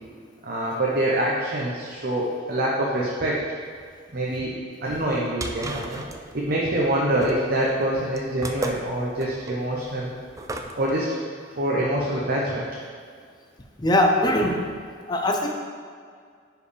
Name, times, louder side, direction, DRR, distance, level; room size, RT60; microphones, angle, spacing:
voice 1, 0.4-3.4 4.1-4.6 4.8-6.0 6.3-10.1 10.8-11.1 11.6-12.7, right 1 dB, 55° right, -4 dB, 0.8 m, -25 dB
sound 1, 5.0-10.9, right 2 dB, 15° right, 0.4 m, -35 dB
voice 2, 13.8-14.6 15.1-15.5, left 1 dB, 25° left, 2 dB, 0.7 m, -21 dB
10.0 x 4.7 x 3.4 m, 2.1 s
head